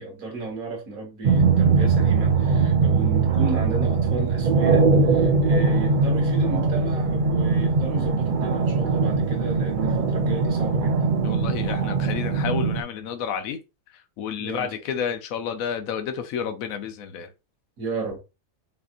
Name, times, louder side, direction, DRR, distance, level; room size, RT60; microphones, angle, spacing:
voice 1, 0.0-11.2 14.4-14.7 17.8-18.2, right 3 dB, 80° right, 1.9 m, -34 dB
sound 1, 1.2-12.8, right 4 dB, 45° right, 0.8 m, -21 dB
voice 2, 11.2-13.6 13.9-17.3, left 7 dB, 80° left, 1.1 m, -30 dB
5.5 x 2.8 x 2.5 m
omnidirectional pair, 1.5 m